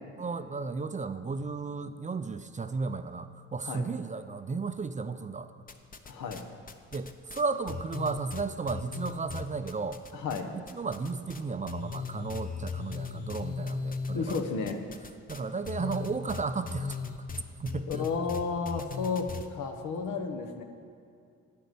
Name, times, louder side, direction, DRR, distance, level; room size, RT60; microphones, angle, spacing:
voice 1, 0.2-5.5 6.9-10.0 10.5-14.4 15.3-17.0 17.6-18.1, right 4 dB, 25° right, 10 dB, 0.5 m, -34 dB
sound 1, 5.7-6.4 6.7-10.4 10.7-11.4 11.7-19.5, left 5 dB, 30° left, 0.8 m, -37 dB
voice 2, 6.1-6.4 10.2-10.5 14.1-14.8 17.9-20.6, left 5 dB, 80° left, 5 dB, 1.2 m, -32 dB
10.0 x 8.7 x 6.8 m, 2.3 s
cardioid pair, 90°, 30 cm